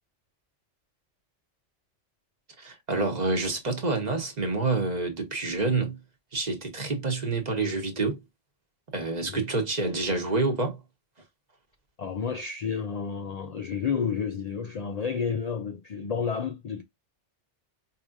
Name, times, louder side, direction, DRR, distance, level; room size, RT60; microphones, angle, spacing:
voice 1, 2.6-6.0 6.3-8.2 8.9-10.8, right 3 dB, 40° right, 1.0 m, -28 dB
voice 2, 12.0-16.8, left 6 dB, 85° left, 0.3 m, -31 dB
4.7 x 2.8 x 2.4 m
omnidirectional pair, 1.2 m